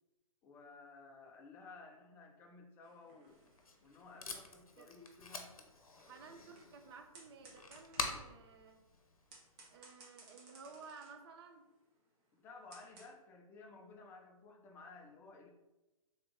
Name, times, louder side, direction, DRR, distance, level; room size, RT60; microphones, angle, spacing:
voice 1, 0.4-3.4 3.8-5.5 12.3-15.5, left 3 dB, 10° left, 2 dB, 0.3 m, -56 dB
sound 1, 2.8-13.1, right 2 dB, 30° right, 0.9 m, -63 dB
Packing tape duct tape, 3.3-9.8, left 3 dB, 75° left, 0.6 m, -47 dB
voice 2, 6.1-8.8 9.7-11.7, right 5 dB, 45° right, 5 dB, 0.5 m, -55 dB
3.5 x 2.8 x 3.5 m, 1.1 s
figure-of-eight pair, 125°, 18 cm